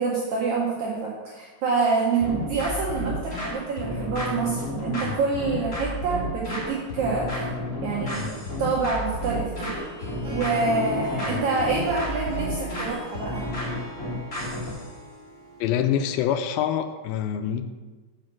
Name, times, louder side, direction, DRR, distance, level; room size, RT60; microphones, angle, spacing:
voice 1, 0.0-7.5 7.8-8.3 8.6-9.8 10.3-13.5, right 4 dB, 85° right, -3 dB, 1.6 m, -26 dB
sound 1, 2.2-14.9, left 1 dB, 55° left, 0.9 m, -31 dB
Harp, 9.4-15.9, left 1 dB, 45° right, 1.1 m, -38 dB
voice 2, 15.6-17.6, left 9 dB, 85° left, 8 dB, 2.1 m, -25 dB
5.7 x 5.1 x 5.9 m, 1.3 s
omnidirectional pair, 4.5 m